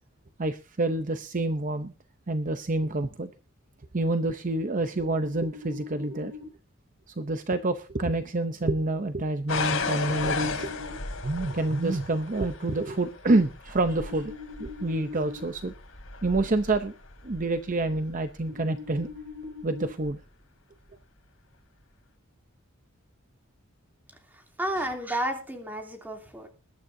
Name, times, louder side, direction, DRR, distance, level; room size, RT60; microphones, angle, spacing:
voice 1, 0.4-1.9 2.3-3.3 3.9-6.3 7.1-10.7 11.2-14.3 14.6-15.7 16.2-17.0 17.2-19.1 19.6-20.2 24.8-24.9, right 2 dB, 40° right, 9 dB, 0.7 m, -27 dB
sound 1, 5.1-6.4 9.5-10.9 14.0-15.4 18.5-19.9, left 5 dB, 80° right, 6.6 m, -41 dB
sound 2, 9.5-18.3 19.0-19.5 20.0-20.2, left 4 dB, 70° left, 3.0 m, -35 dB
voice 2, 24.6-26.5, right 1 dB, 10° right, 3 dB, 2.9 m, -31 dB
21.5 x 11.5 x 2.7 m, 0.32 s
head